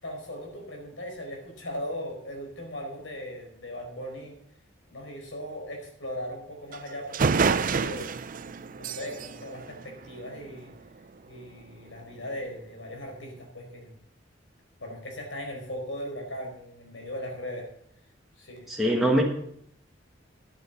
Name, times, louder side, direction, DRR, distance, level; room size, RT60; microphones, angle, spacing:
voice 1, 0.0-4.3 4.9-8.1 8.8-10.7 11.3-14.0 14.8-17.7 18.4-18.7, equal, 85° left, 1 dB, 4.9 m, -38 dB
sound 1, 6.7-6.8 7.1-10.6, right 5 dB, 45° right, 0.5 m, -28 dB
voice 2, 18.7-19.2, equal, ahead, -3 dB, 1.5 m, -22 dB
10.5 x 9.1 x 7.2 m, 0.68 s
head